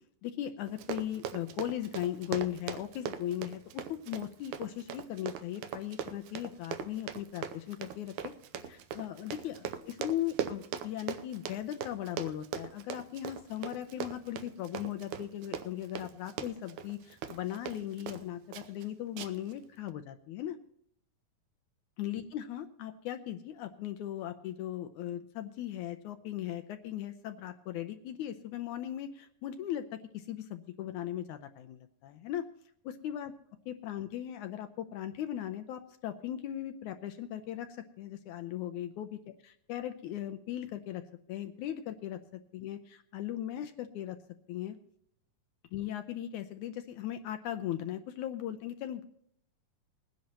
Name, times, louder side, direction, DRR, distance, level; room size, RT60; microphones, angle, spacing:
voice 1, 0.2-8.3 8.7-20.6 22.0-32.4 32.9-33.3 33.7-41.0 41.3-44.2 44.5-44.8 45.7-49.1, left 12 dB, 75° left, 8 dB, 1.9 m, -38 dB
Run, 0.7-18.2 18.5-18.9 19.2-19.5 19.9-20.0, right 8 dB, 75° right, 2.0 m, -40 dB
21.5 x 10.5 x 2.9 m, 0.68 s
omnidirectional pair, 3.9 m